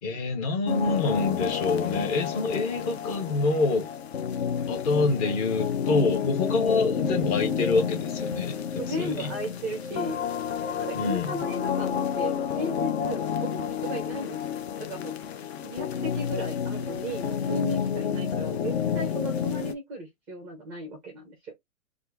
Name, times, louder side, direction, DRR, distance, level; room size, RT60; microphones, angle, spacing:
voice 1, 0.0-3.9 4.7-9.3 10.9-11.4, left 3 dB, 30° left, 1.0 m, -26 dB
sound 1, 0.7-19.7, left 8 dB, 50° left, 0.6 m, -30 dB
voice 2, 8.8-10.2 10.6-15.1 15.6-21.5, right 1 dB, 5° right, 0.4 m, -35 dB
2.8 x 2.4 x 3.5 m
hypercardioid pair, 150°, 41 cm